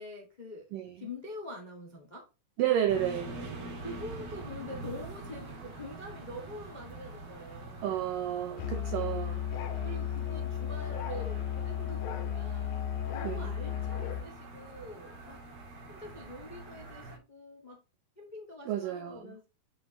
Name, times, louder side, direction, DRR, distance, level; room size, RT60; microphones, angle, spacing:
voice 1, 0.0-0.7 1.0-2.3 3.8-8.1 9.8-12.7 13.1-15.4 15.9-17.8 18.2-19.5, left 1 dB, 30° left, 0.8 m, -45 dB
voice 2, 2.6-3.4 7.8-9.4 13.2-13.5 18.7-19.3, right 11 dB, 80° right, 2.0 m, -31 dB
sound 1, 2.9-17.2, right 2 dB, 65° right, 4.3 m, -45 dB
Musical instrument, 8.6-14.3, left 9 dB, 85° left, 3.2 m, -34 dB
8.7 x 5.4 x 3.1 m
omnidirectional pair, 4.7 m